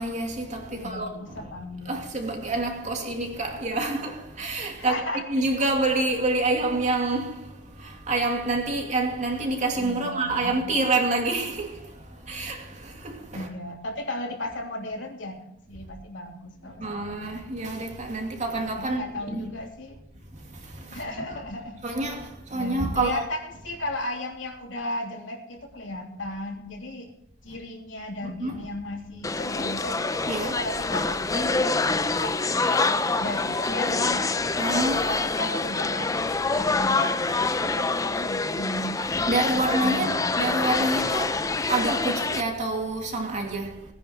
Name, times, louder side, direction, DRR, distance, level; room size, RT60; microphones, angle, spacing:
voice 1, 0.0-1.4 1.9-5.0 5.3-7.5 7.8-11.8 12.3-13.5 16.8-19.5 20.9-21.0 21.8-23.2 28.2-28.6 30.3-30.6 34.6-35.2 39.3-41.4 41.7-43.9, right 2 dB, 40° right, 2.6 m, -27 dB
voice 2, 0.8-2.0 4.8-5.2 9.8-10.6 13.3-17.1 18.8-20.0 20.9-21.8 22.5-23.4 23.6-27.1 27.4-30.0 30.3-31.5 32.1-32.9 33.2-34.2 35.1-36.1 36.6-37.1 37.6-39.0 39.5-40.7, left 1 dB, 85° left, 3.1 m, -35 dB
sound 1, 29.2-42.4, left 3 dB, 20° left, 0.5 m, -26 dB
18.5 x 9.9 x 4.6 m
head